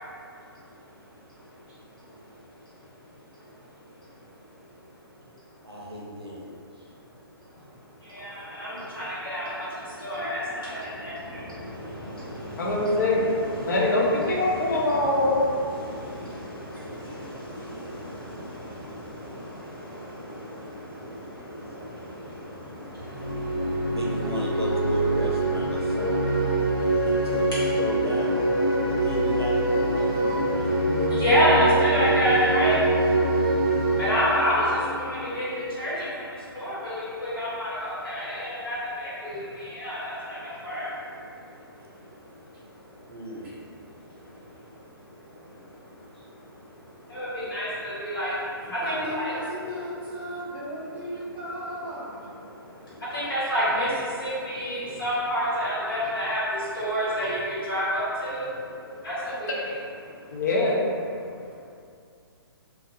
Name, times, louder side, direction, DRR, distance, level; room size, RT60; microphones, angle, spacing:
voice 1, 5.6-6.5 23.9-26.4 27.0-28.5 28.9-30.8 43.1-43.5, equal, 85° right, -4 dB, 0.5 m, -35 dB
voice 2, 8.0-24.0 25.7-27.3 28.6-29.1 29.9-41.3 42.9-43.0 44.5-44.6 45.4-45.5 47.1-49.3 52.4-58.5 59.0-59.5 60.2-60.4, equal, 65° left, -10 dB, 1.2 m, -30 dB
voice 3, 12.6-13.2 13.6-15.4 60.3-60.8, left 2 dB, 45° left, -4 dB, 0.5 m, -23 dB
sound 1, 23.0-35.6, right 2 dB, 35° right, 0.7 m, -25 dB
voice 4, 48.6-52.2, equal, 10° right, -9 dB, 0.4 m, -35 dB
2.3 x 2.1 x 2.6 m, 2.4 s
figure-of-eight pair, 130°, 13 cm